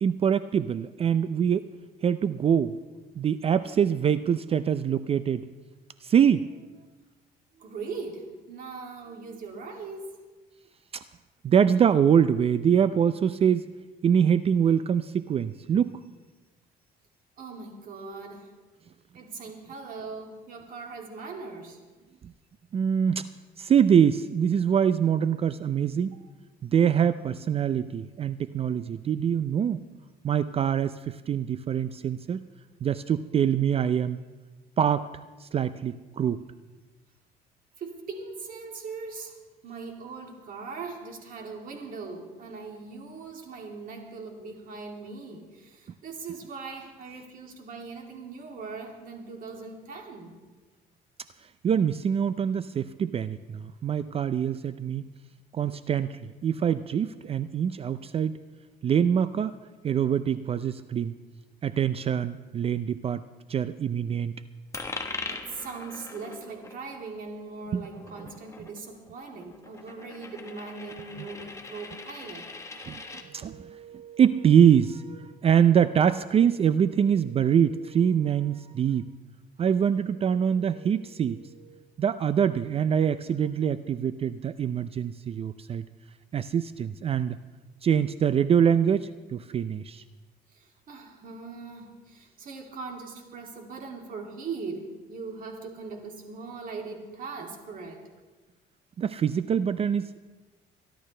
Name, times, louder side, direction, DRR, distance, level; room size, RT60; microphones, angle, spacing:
voice 1, 0.0-1.7 2.0-2.8 3.2-5.5 6.0-6.5 10.9-11.0 11.4-13.7 14.0-16.0 22.2-22.3 22.7-23.3 23.6-26.2 26.6-29.8 30.2-32.4 32.8-34.2 34.8-35.1 35.4-36.4 51.6-55.0 55.5-58.4 58.8-59.6 59.8-61.1 61.6-63.2 63.5-64.3 67.7-67.9 71.2-71.3 72.8-79.0 79.6-85.9 86.3-87.4 87.8-90.0 99.0-100.2, right 8 dB, 35° right, 14 dB, 0.4 m, -24 dB
voice 2, 7.6-10.2 17.4-18.5 19.1-21.8 37.8-39.4 39.6-50.4 65.3-72.5 90.5-98.0, right 4 dB, 55° right, 2 dB, 2.7 m, -40 dB
Coin (dropping), 64.7-73.3, left 3 dB, 15° left, 1.3 m, -41 dB
24.0 x 11.5 x 3.3 m, 1.2 s
cardioid pair, 110°, 17 cm